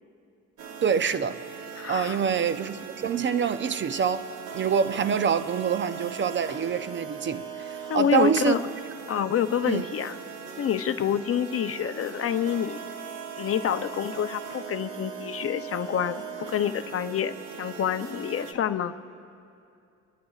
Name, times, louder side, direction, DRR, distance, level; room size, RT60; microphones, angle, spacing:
sound 1, 0.6-18.5, right 7 dB, 80° right, 1.1 m, -40 dB
voice 1, 0.8-1.4 1.9-4.3 4.5-8.6 9.7-9.8, right 6 dB, 40° right, 0.5 m, -26 dB
voice 2, 1.8-2.2 7.9-8.6 9.1-10.2 10.6-12.8 13.4-16.2 16.5-18.9, left 9 dB, 50° left, 0.6 m, -27 dB
29.5 x 13.5 x 2.4 m
cardioid pair, 90°, 30 cm